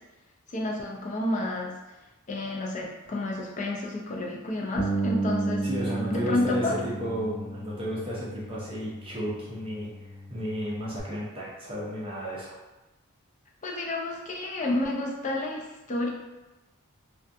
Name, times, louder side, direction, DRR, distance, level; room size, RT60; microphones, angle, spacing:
voice 1, 0.5-1.7 2.3-5.7 6.1-6.8 13.6-16.1, left 2 dB, 35° left, -1 dB, 0.4 m, -30 dB
Bass guitar, 4.8-11.0, right 2 dB, 55° left, 0.8 m, -33 dB
voice 2, 5.6-12.6, equal, 25° right, -7 dB, 0.5 m, -33 dB
2.4 x 2.2 x 2.6 m, 1.1 s
head